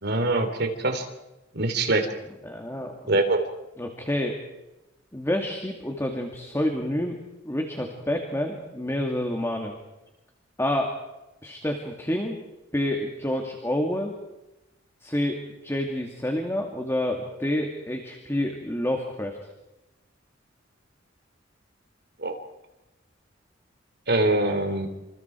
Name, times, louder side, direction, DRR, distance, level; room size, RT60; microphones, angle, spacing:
voice 1, 0.0-1.1 1.5-2.1 3.1-3.4 22.2-22.4 24.1-24.9, right 2 dB, 55° right, 7 dB, 3.6 m, -23 dB
voice 2, 2.4-3.2 3.8-4.4 5.1-7.2 7.4-9.8 10.6-11.0 11.4-12.4 12.7-14.1 15.0-19.4, left 1 dB, 15° left, 3 dB, 2.5 m, -28 dB
28.0 x 27.5 x 4.7 m, 0.98 s
head